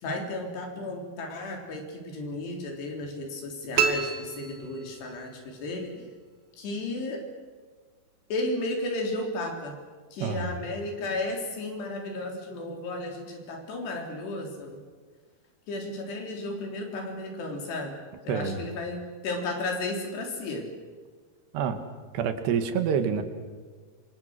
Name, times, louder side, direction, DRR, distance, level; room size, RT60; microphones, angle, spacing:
voice 1, 0.0-6.1 6.6-7.2 8.3-9.7 10.1-14.8 15.7-18.0 18.2-20.7, left 2 dB, 80° left, 2 dB, 5.7 m, -34 dB
sound 1, 3.8-5.3, right 6 dB, 65° right, 3.1 m, -28 dB
voice 2, 10.2-10.5 18.3-18.6 21.5-21.8 22.1-23.2, right 7 dB, 85° right, 8 dB, 3.8 m, -27 dB
26.0 x 25.5 x 6.5 m, 1.5 s
omnidirectional pair, 4.7 m